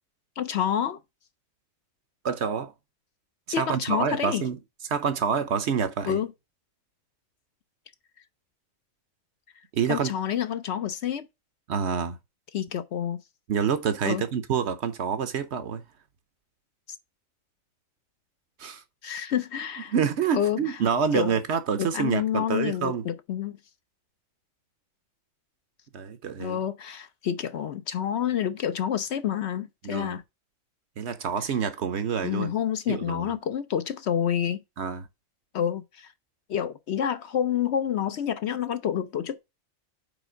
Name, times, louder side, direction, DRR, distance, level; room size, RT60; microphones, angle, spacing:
voice 1, 0.4-1.0 3.5-4.4 6.1-6.3 9.9-11.3 12.5-13.2 14.0-14.2 19.0-19.9 20.3-20.8 21.1-21.3 21.8-23.6 26.4-30.2 32.2-34.6 35.5-36.1 36.5-39.4, left 9 dB, 60° left, 0.8 m, -28 dB
voice 2, 2.2-2.7 3.6-4.6 4.9-6.2 9.7-10.1 11.7-12.2 13.5-15.8 18.6-18.8 19.9-23.0 25.9-26.6 29.8-30.2 31.0-32.5 32.9-33.3 34.8-35.1, right 7 dB, 60° right, 0.9 m, -27 dB
5.0 x 4.5 x 6.0 m
omnidirectional pair, 1.4 m